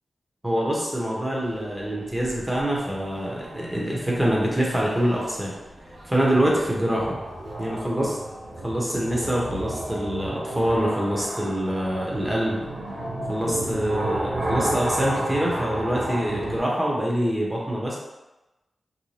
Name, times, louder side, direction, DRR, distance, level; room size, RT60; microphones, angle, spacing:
voice 1, 0.4-5.6 6.0-7.2 7.6-8.2 8.6-12.6 13.3-18.0, equal, 10° right, -4 dB, 0.8 m, -25 dB
sound 1, 1.4-16.6, right 1 dB, 85° right, 0.8 m, -33 dB
2.6 x 2.2 x 3.1 m, 1.0 s
cardioid pair, 70°, 0 cm